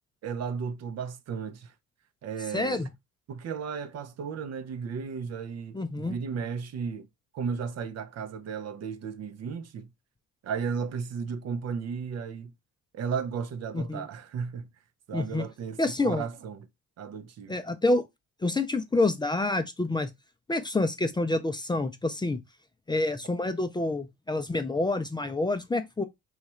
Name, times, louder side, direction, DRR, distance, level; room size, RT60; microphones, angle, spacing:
voice 1, 0.2-1.7 2.2-2.9 3.3-7.1 7.3-9.9 10.4-12.5 12.9-14.7 15.1-16.7 17.0-17.6, right 6 dB, 55° right, 0.6 m, -34 dB
voice 2, 2.5-2.9 5.7-6.2 13.7-14.1 15.1-15.5 15.8-16.3 17.5-18.0 18.4-20.1 20.5-22.4 22.9-26.0, left 2 dB, 15° left, 0.4 m, -27 dB
3.0 x 2.4 x 4.2 m
cardioid pair, 90°, 30 cm